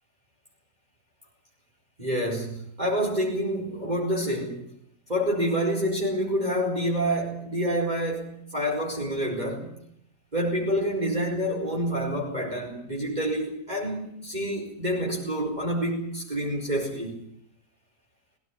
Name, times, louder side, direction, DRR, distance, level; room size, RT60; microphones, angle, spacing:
voice 1, 2.0-4.7 5.1-9.8 10.3-17.2, equal, 30° right, -3 dB, 5.0 m, -28 dB
20.0 x 18.0 x 9.8 m, 0.72 s
omnidirectional pair, 1.5 m